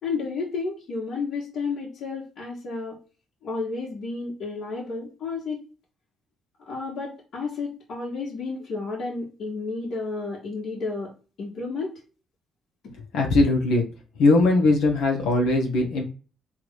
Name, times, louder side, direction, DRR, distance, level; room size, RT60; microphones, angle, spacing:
voice 1, 0.0-3.0 3.4-5.6 6.7-11.1 11.4-11.9 12.8-12.9, left 4 dB, 70° left, -5 dB, 1.9 m, -31 dB
voice 2, 13.1-13.8 14.2-16.0, left 2 dB, 90° left, 1 dB, 1.3 m, -20 dB
3.7 x 2.8 x 4.7 m, 0.34 s
cardioid pair, 90°, 0 cm